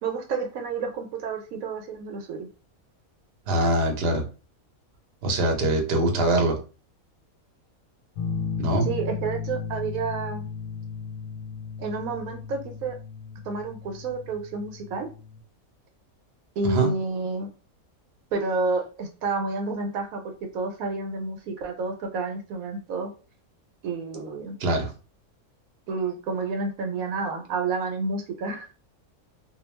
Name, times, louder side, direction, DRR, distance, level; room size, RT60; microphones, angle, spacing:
voice 1, 0.0-2.5 8.8-10.4 11.8-12.9 13.4-15.1 16.6-17.5 18.3-20.2 20.5-23.1 23.8-24.6 25.9-28.7, right 4 dB, 75° right, 4 dB, 1.0 m, -30 dB
voice 2, 3.5-4.2 5.2-6.6 8.6-8.9 16.6-16.9 24.6-24.9, right 1 dB, 55° right, 2 dB, 0.7 m, -23 dB
sound 1, 8.2-15.4, left 5 dB, 65° left, 0.8 m, -35 dB
2.3 x 2.2 x 3.1 m, 0.35 s
omnidirectional pair, 1.5 m